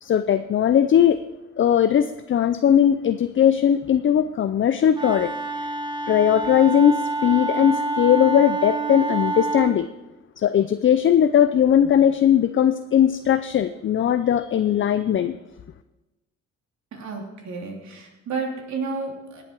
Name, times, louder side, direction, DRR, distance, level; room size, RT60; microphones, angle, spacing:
voice 1, 0.0-1.2 1.6-5.3 5.6-5.7 6.1-9.9 10.4-15.4, left 9 dB, 40° left, 11 dB, 0.5 m, -19 dB
Wind instrument woodwind instrument, 4.9-9.8, right 3 dB, 15° right, 1.2 m, -27 dB
voice 2, 16.9-19.4, right 4 dB, 65° right, 0 dB, 3.2 m, -31 dB
17.5 x 7.8 x 4.6 m, 1.1 s
cardioid pair, 90°, 30 cm